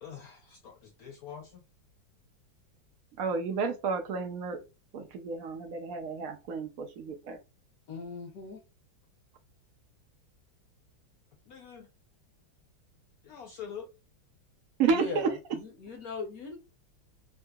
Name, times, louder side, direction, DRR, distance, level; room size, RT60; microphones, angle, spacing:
voice 1, 0.0-1.6 11.5-11.9 13.2-13.9, left 8 dB, 75° left, 0.8 m, -45 dB
voice 2, 3.2-4.6 4.9-7.4 14.8-15.4, right 5 dB, 75° right, 0.8 m, -31 dB
voice 3, 7.9-8.6 14.9-16.6, left 3 dB, 55° left, 1.1 m, -39 dB
3.6 x 2.7 x 2.3 m
omnidirectional pair, 2.1 m